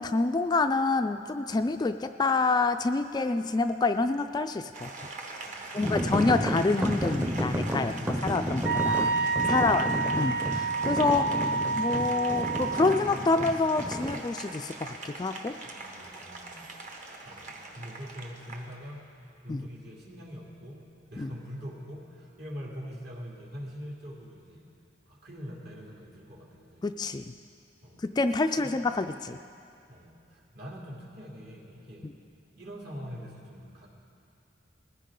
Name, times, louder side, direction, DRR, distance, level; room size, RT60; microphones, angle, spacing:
voice 1, 0.0-4.9 5.7-7.9 8.2-9.1 9.5-9.9 10.1-11.3 11.8-15.5 19.5-19.6 21.2-21.3 26.8-27.2 28.0-29.4 32.0-32.1, left 3 dB, 20° left, 8 dB, 0.3 m, -27 dB
Applause, 4.7-18.8, right 3 dB, 40° right, 1.3 m, -42 dB
voice 2, 5.4-6.5 9.5-10.1 15.6-16.7 17.3-19.0 19.4-20.8 21.1-24.6 25.1-26.9 27.8-28.0 28.6-28.7 29.9-32.1 32.6-33.9, equal, 60° right, -3 dB, 2.8 m, -44 dB
sound 1, 5.8-14.2, equal, 10° right, 0.7 m, -32 dB
Wind instrument woodwind instrument, 8.6-13.0, right 4 dB, 85° right, 1.2 m, -28 dB
20.0 x 15.5 x 3.8 m, 2.5 s
head